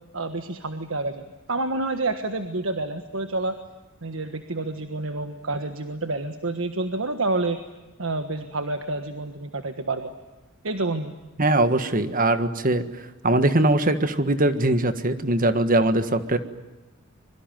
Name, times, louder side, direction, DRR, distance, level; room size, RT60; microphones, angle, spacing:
voice 1, 0.1-3.6 4.0-7.6 8.0-10.1 10.6-11.1, right 2 dB, 75° right, 8 dB, 1.5 m, -28 dB
voice 2, 11.4-16.4, right 2 dB, 45° right, 10 dB, 1.7 m, -21 dB
25.5 x 23.0 x 9.2 m, 1.1 s
head